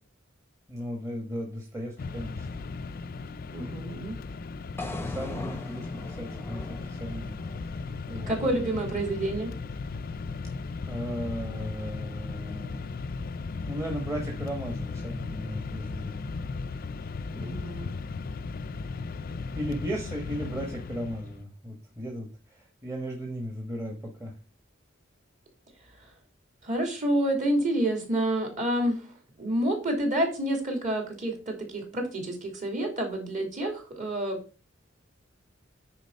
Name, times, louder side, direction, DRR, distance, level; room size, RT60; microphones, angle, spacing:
voice 1, 0.7-2.6 5.0-8.4 10.9-12.9 13.7-16.3 19.5-24.3, equal, 15° right, 1 dB, 1.3 m, -36 dB
Mechanisms, 2.0-21.4, left 4 dB, 50° left, 0.4 m, -36 dB
voice 2, 3.5-4.2 8.3-9.5 17.3-17.9 26.6-29.0 29.4-34.4, right 1 dB, 40° right, 2 dB, 2.8 m, -28 dB
sound 1, 4.8-8.9, left 2 dB, 10° left, 0.7 m, -41 dB
9.4 x 4.2 x 5.3 m, 0.35 s
head